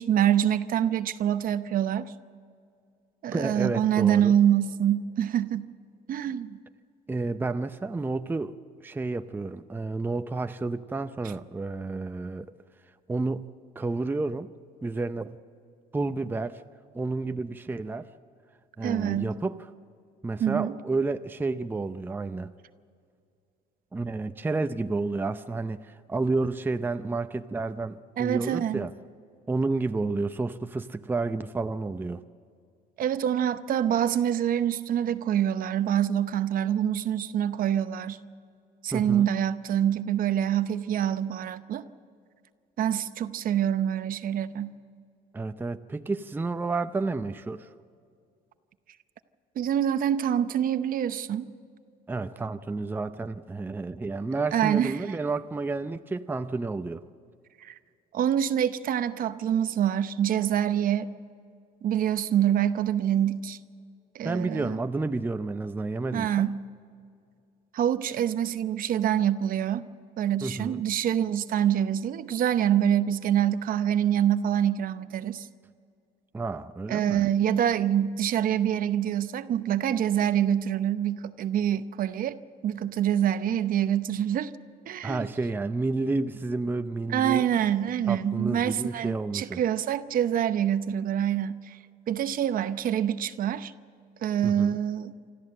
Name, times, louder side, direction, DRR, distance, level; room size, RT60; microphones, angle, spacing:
voice 1, 0.0-2.1 3.2-5.7 6.1-6.6 18.8-19.3 20.4-20.8 28.2-28.9 33.0-38.2 38.8-41.8 42.8-44.7 49.6-51.5 54.5-55.0 57.6-57.7 58.1-61.1 61.8-63.6 64.1-64.8 66.1-66.6 67.7-69.9 70.2-75.5 76.9-82.4 82.6-84.5 84.9-85.3 87.1-91.8 92.1-93.7 94.2-95.1, right 10 dB, 55° right, 12 dB, 0.8 m, -26 dB
voice 2, 3.3-4.3 7.1-8.6 8.8-12.5 13.1-13.5 13.8-14.5 14.8-15.4 15.9-16.6 16.9-18.1 18.8-19.6 20.2-22.5 23.9-28.9 29.5-32.2 38.9-39.3 45.3-47.7 52.1-57.0 64.2-66.5 70.4-70.8 76.3-77.2 85.0-87.4 88.1-89.6 94.4-94.8, right 3 dB, 10° right, 9 dB, 0.6 m, -30 dB
25.5 x 13.5 x 7.7 m, 2.3 s
cardioid pair, 110°, 17 cm